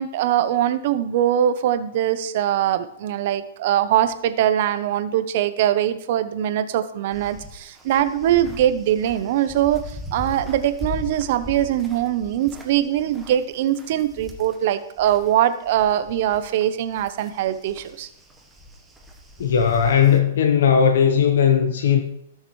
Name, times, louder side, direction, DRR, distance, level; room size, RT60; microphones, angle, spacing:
voice 1, 0.0-18.1, right 11 dB, 50° right, 12 dB, 0.7 m, -22 dB
sound 1, 7.1-15.3 15.6-20.2, left 2 dB, 5° right, 1.1 m, -39 dB
voice 2, 19.4-22.0, left 7 dB, 75° left, 5 dB, 1.0 m, -17 dB
16.0 x 6.6 x 3.1 m, 0.75 s
hypercardioid pair, 155°, 0 cm